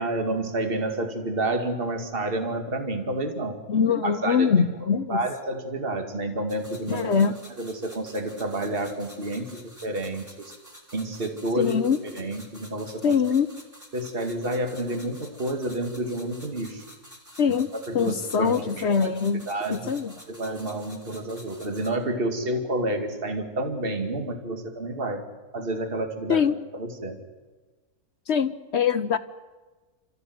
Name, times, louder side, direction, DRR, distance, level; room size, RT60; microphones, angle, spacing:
voice 1, 0.0-3.6 4.0-4.5 4.9-7.1 7.6-10.5 10.9-11.8 12.1-13.1 13.9-16.8 17.5-19.1 19.5-19.9 20.3-25.2 25.5-26.5 26.7-27.2, right 1 dB, 35° right, 5 dB, 2.4 m, -29 dB
voice 2, 3.7-5.2 6.9-7.3 11.6-12.3 13.0-13.5 17.4-17.7 17.9-20.1 26.3-26.5 28.3-29.2, left 6 dB, 50° left, 12 dB, 1.0 m, -23 dB
sound 1, 6.5-21.9, equal, 10° right, 3.8 m, -49 dB
29.0 x 14.5 x 9.4 m, 1.3 s
omnidirectional pair, 1.7 m